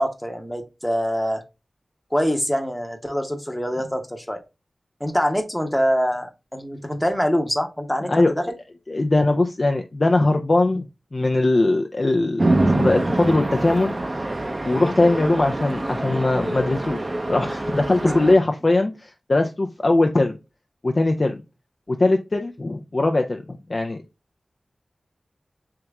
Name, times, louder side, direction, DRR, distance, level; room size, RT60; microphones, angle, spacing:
voice 1, 0.0-1.4 2.1-4.4 5.0-8.4 18.0-18.1, equal, 5° left, 0.8 m, -24 dB
voice 2, 8.9-10.8 11.1-14.3 14.6-20.4 20.8-21.4 21.9-24.0, left 2 dB, 50° left, 0.5 m, -21 dB
Chatter / Traffic noise roadway noise / Train, 12.4-18.3, right 2 dB, 40° right, 0.6 m, -25 dB
3.4 x 2.9 x 3.4 m
cardioid pair, 40°, 0 cm